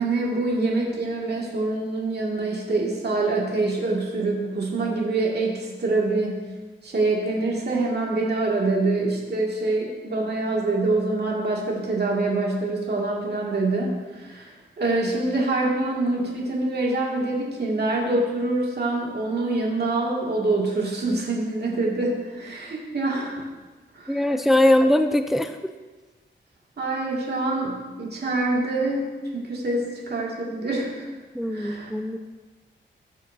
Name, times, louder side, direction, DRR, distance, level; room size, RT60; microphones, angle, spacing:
voice 1, 0.0-6.4 6.8-23.4 24.0-24.3 26.8-29.0 29.3-31.1 31.5-31.9, right 2 dB, 55° right, -3 dB, 2.2 m, -25 dB
voice 2, 24.1-25.6 31.3-32.2, left 1 dB, ahead, 8 dB, 0.5 m, -21 dB
15.5 x 6.4 x 2.7 m, 1.3 s
cardioid pair, 70°, 20 cm